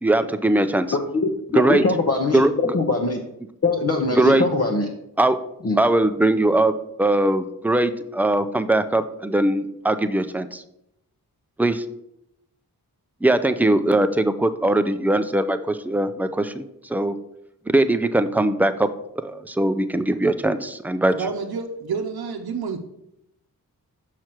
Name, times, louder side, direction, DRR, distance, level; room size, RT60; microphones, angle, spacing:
voice 1, 0.0-0.9 1.5-1.8 2.3-2.7 4.1-4.5 5.2-5.4 5.8-6.7 7.0-10.6 11.6-11.8 13.2-17.2 17.7-18.9 19.2-21.1, right 1 dB, 5° right, 10 dB, 0.4 m, -20 dB
voice 2, 1.5-3.2 3.6-4.9 5.6-5.8, left 3 dB, 40° left, 1 dB, 0.8 m, -22 dB
voice 3, 21.1-22.8, right 5 dB, 75° right, 3 dB, 0.7 m, -29 dB
6.3 x 5.8 x 4.5 m, 0.81 s
wide cardioid pair, 100°, 37 cm